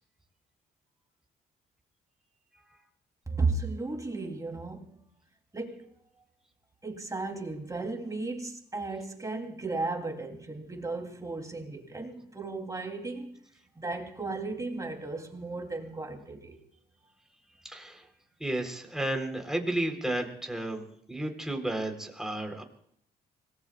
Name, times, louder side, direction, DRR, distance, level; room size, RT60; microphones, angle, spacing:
voice 1, 3.3-5.0 5.5-5.9 6.8-13.4 13.8-16.6, right 3 dB, 20° right, 3.6 m, -35 dB
voice 2, 17.7-18.0 18.4-22.6, right 1 dB, 5° right, 4.2 m, -32 dB
26.0 x 19.5 x 2.5 m
supercardioid pair, 60°, 17 cm